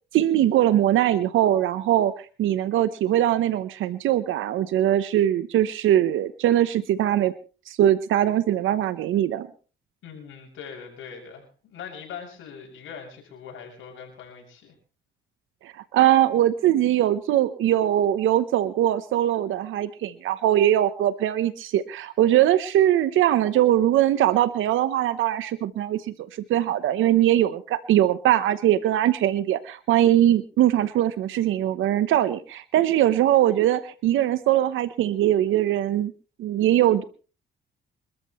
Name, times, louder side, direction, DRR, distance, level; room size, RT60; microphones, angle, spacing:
voice 1, 0.1-7.3 7.7-9.5 15.6-36.1 36.4-37.0, right 12 dB, 80° right, 14 dB, 1.0 m, -21 dB
voice 2, 10.0-14.7, left 7 dB, 80° left, 1 dB, 7.0 m, -41 dB
27.0 x 13.5 x 3.2 m, 0.36 s
cardioid pair, 90°, 20 cm